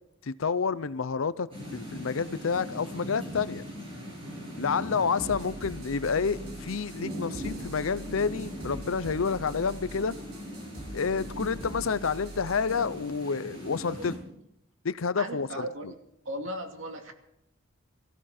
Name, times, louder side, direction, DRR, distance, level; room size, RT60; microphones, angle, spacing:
voice 1, 0.2-3.6 4.6-10.2 10.9-14.1 14.8-15.7, left 5 dB, 75° left, 0.6 m, -29 dB
sound 1, 1.5-14.2, equal, 25° right, 7.7 m, -40 dB
sound 2, 5.2-12.9, right 2 dB, 50° right, 4.3 m, -44 dB
voice 2, 15.2-15.9 16.2-17.1, right 1 dB, 65° right, 2.4 m, -37 dB
22.5 x 15.0 x 4.3 m
head